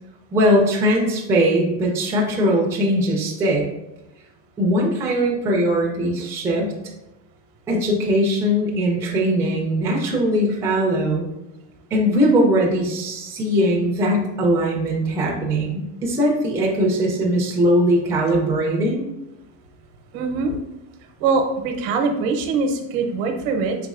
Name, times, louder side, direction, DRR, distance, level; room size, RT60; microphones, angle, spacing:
voice 1, 0.3-3.6 4.6-6.7 7.7-11.2 11.9-19.0, equal, 10° right, -2 dB, 0.3 m, -20 dB
voice 2, 20.1-20.6 21.2-23.8, right 4 dB, 75° right, 5 dB, 0.8 m, -22 dB
4.1 x 3.4 x 2.4 m, 0.91 s
cardioid pair, 160°, 39 cm